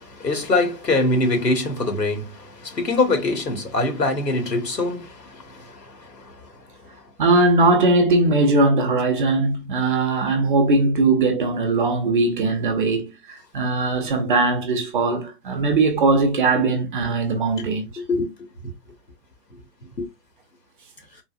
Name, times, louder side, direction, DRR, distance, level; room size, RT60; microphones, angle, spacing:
voice 1, 0.0-6.5 17.6-17.7 18.0-18.3 20.0-20.1, left 2 dB, 90° left, 1.6 m, -24 dB
voice 2, 7.2-17.9, right 2 dB, 35° right, 0.7 m, -20 dB
3.9 x 2.4 x 2.4 m
figure-of-eight pair, 130°, 48 cm